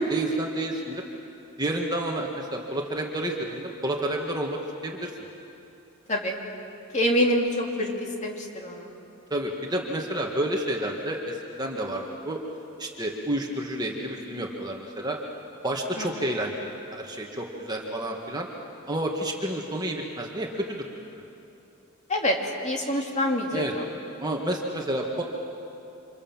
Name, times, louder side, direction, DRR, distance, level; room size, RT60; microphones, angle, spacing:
voice 1, 0.1-1.0 1.6-5.1 9.3-12.4 12.8-15.2 15.6-18.5 18.9-20.8 23.5-23.7 24.2-25.2, right 1 dB, 20° right, 0 dB, 1.9 m, -30 dB
voice 2, 6.9-7.9 8.2-8.9 16.0-16.1 22.1-22.4 22.6-23.8, equal, 30° left, 0 dB, 2.9 m, -25 dB
29.0 x 26.5 x 7.4 m, 2.8 s
head